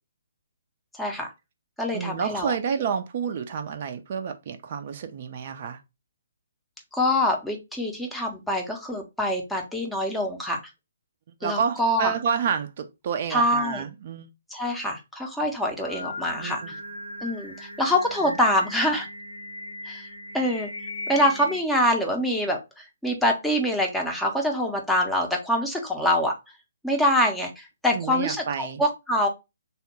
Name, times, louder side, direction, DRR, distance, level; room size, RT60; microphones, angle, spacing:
voice 1, 0.9-1.3 1.8-2.6 6.9-10.6 11.4-12.1 13.3-13.8 14.5-16.8 17.2-19.1 19.8-20.1 20.3-20.7 21.1-26.3 26.8-29.3, left 1 dB, ahead, 0.7 m, -25 dB
voice 2, 1.9-5.8 11.4-14.3 16.4-16.7 18.3-18.4 27.9-28.8, right 7 dB, 40° right, 0.4 m, -29 dB
Singing, 15.6-21.6, left 2 dB, 80° left, 0.7 m, -38 dB
3.5 x 2.1 x 4.2 m
figure-of-eight pair, 130°, 0 cm